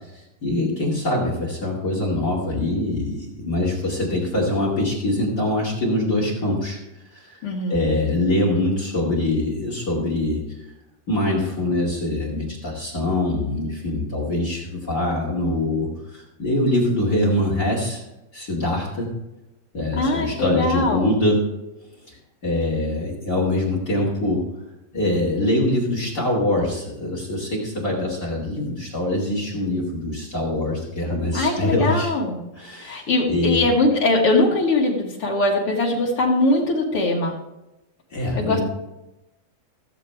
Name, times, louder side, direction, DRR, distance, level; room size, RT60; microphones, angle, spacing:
voice 1, 0.1-6.8 7.1-7.4 7.7-10.4 11.1-18.0 18.3-19.1 19.7-21.4 22.1-22.2 22.4-24.5 24.9-32.1 32.5-33.7 38.1-38.6, left 1 dB, 30° left, -3 dB, 2.1 m, -23 dB
voice 2, 7.4-7.9 19.9-21.0 31.3-32.4 32.8-37.3 38.3-38.6, left 2 dB, 60° left, -2 dB, 1.5 m, -21 dB
16.0 x 7.5 x 3.4 m, 0.96 s
omnidirectional pair, 4.7 m